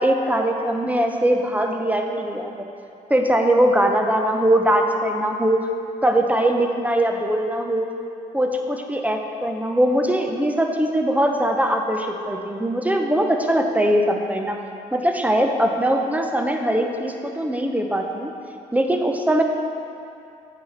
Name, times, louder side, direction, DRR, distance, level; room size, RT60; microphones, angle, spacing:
voice 1, 0.0-2.7 3.1-5.6 6.0-7.9 8.3-14.6 14.9-18.3 18.7-19.4, right 1 dB, 10° right, 3 dB, 0.8 m, -21 dB
8.4 x 4.3 x 4.5 m, 2.6 s
supercardioid pair, 55°, 19 cm